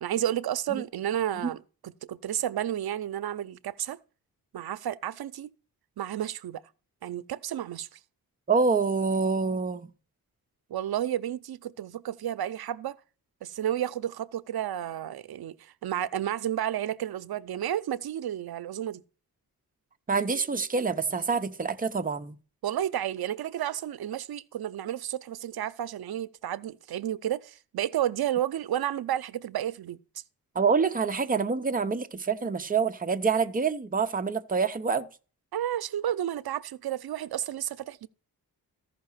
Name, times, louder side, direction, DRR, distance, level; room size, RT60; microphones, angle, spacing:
voice 1, 0.0-4.0 4.5-5.5 6.0-6.6 7.0-8.0 10.7-13.0 13.4-19.0 22.6-30.0 35.5-38.1, right 11 dB, 90° right, 0.6 m, -31 dB
voice 2, 8.5-9.9 20.1-22.4 30.5-35.1, right 5 dB, 25° right, 0.7 m, -26 dB
14.0 x 5.9 x 5.6 m
wide cardioid pair, 175°, 36 cm